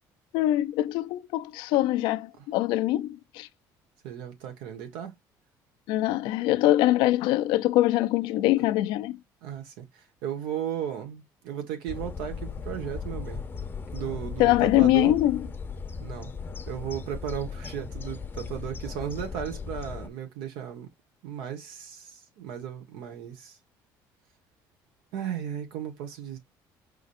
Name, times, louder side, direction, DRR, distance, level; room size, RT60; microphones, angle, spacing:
voice 1, 0.3-3.5 5.9-9.2 14.4-15.5, left 15 dB, 85° left, 0.5 m, -23 dB
voice 2, 4.0-5.1 6.3-6.4 9.4-13.4 13.9-15.1 16.0-16.3 16.7-20.9 21.2-23.6 25.1-26.4, right 9 dB, 90° right, 1.5 m, -35 dB
sound 1, 11.9-20.1, left 5 dB, 25° left, 0.7 m, -37 dB
5.0 x 3.8 x 2.6 m
cardioid pair, 125°, 8 cm